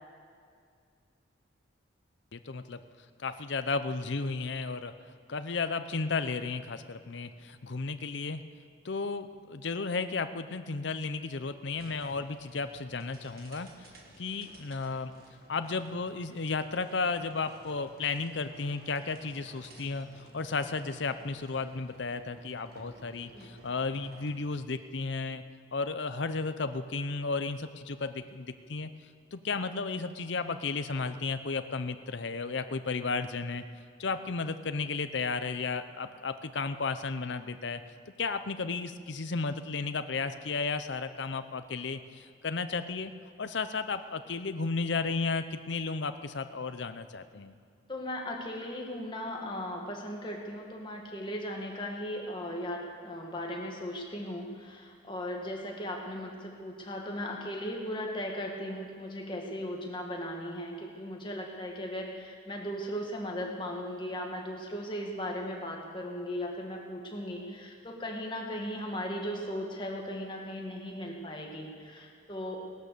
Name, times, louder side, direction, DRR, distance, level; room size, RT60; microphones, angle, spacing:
voice 1, 2.3-2.8 3.2-4.9 5.3-8.4 8.8-13.9 14.2-15.1 15.5-25.4 25.7-28.9 29.3-33.6 34.0-37.8 38.2-43.1 43.4-47.5, left 4 dB, 65° left, 10 dB, 0.7 m, -33 dB
sound 1, 11.7-24.5, right 1 dB, 50° right, 1.7 m, -55 dB
voice 2, 47.9-72.7, equal, 25° left, 0 dB, 1.9 m, -37 dB
18.0 x 11.5 x 6.7 m, 2.2 s
head